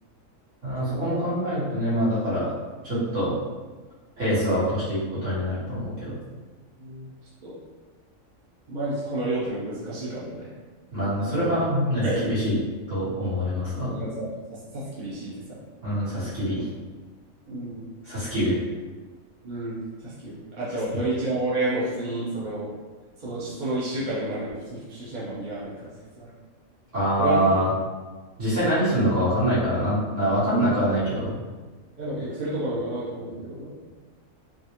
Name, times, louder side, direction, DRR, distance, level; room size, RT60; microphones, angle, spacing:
voice 1, 0.6-2.5 2.8-3.3 4.2-6.1 10.9-12.6 12.9-13.9 15.8-16.7 18.0-18.6 26.9-27.7 28.4-31.3, equal, 65° right, -12 dB, 2.0 m, -24 dB
voice 2, 8.7-10.5 11.3-11.5 12.0-12.3 13.8-15.6 17.5-17.9 19.4-19.7 20.0-22.7 23.2-25.9 26.1-26.3 27.2-27.5 32.0-33.8, right 1 dB, 40° right, -9 dB, 0.8 m, -30 dB
4.1 x 2.0 x 2.9 m, 1.3 s
omnidirectional pair, 1.4 m